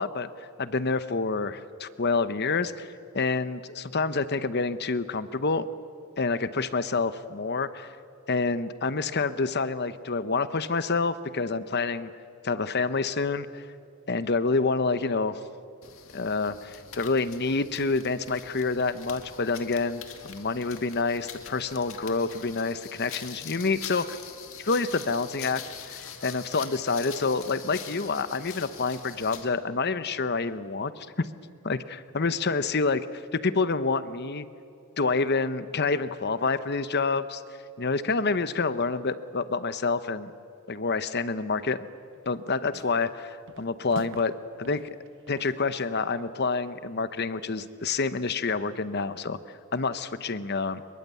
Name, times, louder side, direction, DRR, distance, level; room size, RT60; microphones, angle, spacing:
voice 1, 0.0-2.9 3.1-5.7 6.2-7.9 8.3-12.1 12.4-13.6 14.1-15.4 16.1-24.2 24.6-31.3 31.6-34.5 35.0-37.4 37.8-40.3 40.7-41.8 42.3-44.8 45.3-49.4 49.7-50.8, left 4 dB, 45° left, 13 dB, 0.9 m, -28 dB
sound 1, 15.8-29.5, left 8 dB, 65° left, 2.3 m, -44 dB
sound 2, 42.1-42.4 42.7-43.2 43.5-44.4 44.6-46.0, right 3 dB, 55° right, 0.8 m, -46 dB
26.0 x 23.0 x 8.4 m, 2.7 s
head